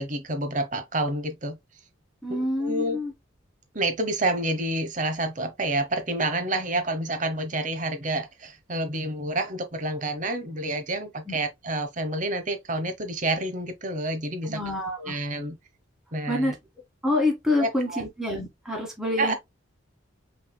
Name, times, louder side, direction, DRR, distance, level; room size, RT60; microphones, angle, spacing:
voice 1, 0.0-1.6 2.3-3.0 3.7-14.6 15.0-15.6 16.1-16.5 17.6-18.1 19.2-19.3, right 1 dB, 40° right, 0.9 m, -29 dB
voice 2, 2.2-3.1 11.3-11.4 14.5-15.2 16.3-16.6 17.0-19.3, left 1 dB, ahead, 1.8 m, -27 dB
5.8 x 3.4 x 2.2 m
head